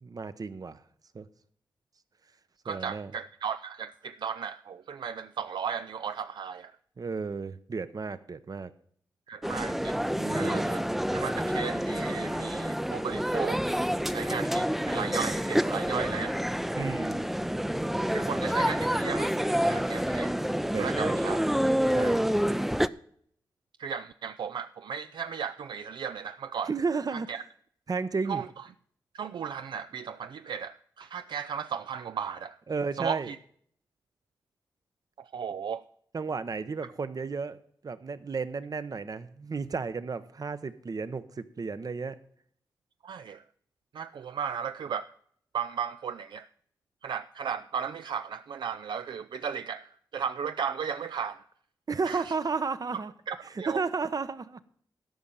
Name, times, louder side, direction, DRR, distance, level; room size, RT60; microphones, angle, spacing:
voice 1, 0.0-0.8 1.1-1.3 2.7-3.1 7.0-8.7 10.2-10.7 16.8-17.2 20.7-21.2 21.9-22.2 26.7-27.3 27.9-28.4 32.7-33.3 36.1-37.6 37.8-42.2 51.9-53.1 53.7-54.6, right 4 dB, 50° right, 14 dB, 0.8 m, -33 dB
voice 2, 2.6-6.8 9.3-10.8 11.1-13.6 14.1-16.4 18.1-19.4 19.7-20.4 20.8-21.4 23.8-26.7 27.1-27.4 28.3-28.5 29.1-32.6 33.0-33.4 35.2-35.8 43.0-43.4 43.9-45.1 45.5-46.5 47.0-51.4 52.1-52.3 53.3-53.8, right 7 dB, 70° right, 11 dB, 0.4 m, -35 dB
sound 1, 9.4-22.9, equal, 5° right, 0.5 m, -28 dB
12.5 x 5.4 x 7.4 m, 0.63 s
cardioid pair, 55°, 8 cm